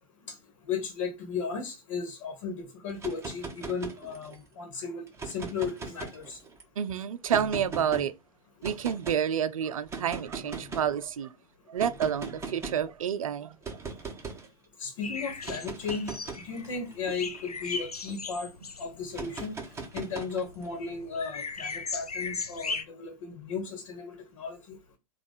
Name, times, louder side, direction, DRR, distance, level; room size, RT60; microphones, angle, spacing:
voice 1, 0.7-6.4 14.8-18.5 18.8-19.6 19.9-24.8, left 5 dB, 55° left, 1.3 m, -35 dB
sound 1, 2.9-4.4 5.1-6.6 7.3-8.0 8.6-9.2 9.9-11.0 11.8-12.9 13.6-14.5 15.3-18.2 19.1-20.7, right 4 dB, 15° right, 1.1 m, -40 dB
voice 2, 6.8-8.1 8.6-11.3 11.7-13.6, right 8 dB, 65° right, 0.5 m, -29 dB
sound 2, 15.0-22.8, left 4 dB, 80° left, 0.6 m, -38 dB
3.5 x 2.5 x 4.1 m
figure-of-eight pair, 100°, 19 cm